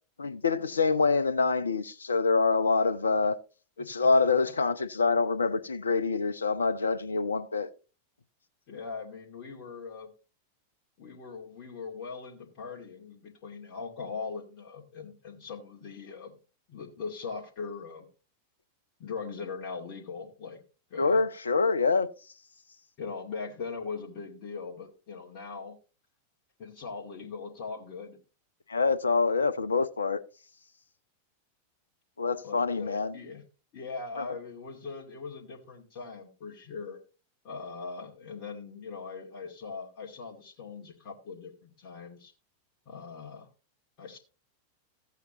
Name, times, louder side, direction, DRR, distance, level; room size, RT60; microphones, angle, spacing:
voice 1, 0.2-3.4 3.8-7.7 21.0-22.1 28.7-30.2 32.2-33.2 34.2-34.3, left 4 dB, 75° left, 0.7 m, -26 dB
voice 2, 3.8-4.1 8.7-10.1 11.0-16.4 16.7-18.1 19.0-20.6 20.9-21.2 23.0-25.8 26.6-28.2 32.4-33.4 33.7-37.0 37.4-42.3 42.9-43.5 44.0-44.2, left 4 dB, 40° left, 2.2 m, -40 dB
14.5 x 8.2 x 2.9 m
figure-of-eight pair, 90°, 0 cm